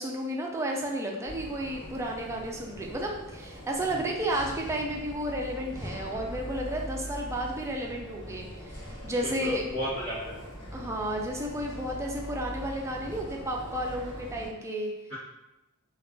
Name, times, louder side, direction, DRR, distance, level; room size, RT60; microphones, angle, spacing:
voice 1, 0.0-9.6 10.7-14.9, right 1 dB, 15° right, 0 dB, 0.4 m, -32 dB
sound 1, 1.3-14.5, equal, 85° left, 1.0 m, -42 dB
voice 2, 9.2-10.3 15.1-15.2, left 1 dB, 45° left, -13 dB, 0.9 m, -34 dB
2.4 x 2.3 x 3.6 m, 0.96 s
head